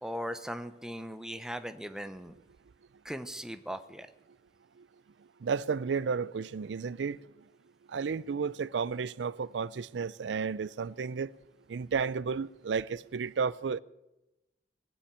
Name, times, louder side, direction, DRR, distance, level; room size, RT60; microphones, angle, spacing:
voice 1, 0.0-2.4 3.0-4.1, equal, 5° right, 0.7 m, -39 dB
voice 2, 5.4-7.2 7.9-11.3 11.7-13.8, right 5 dB, 85° right, 0.4 m, -32 dB
20.5 x 7.1 x 8.7 m
head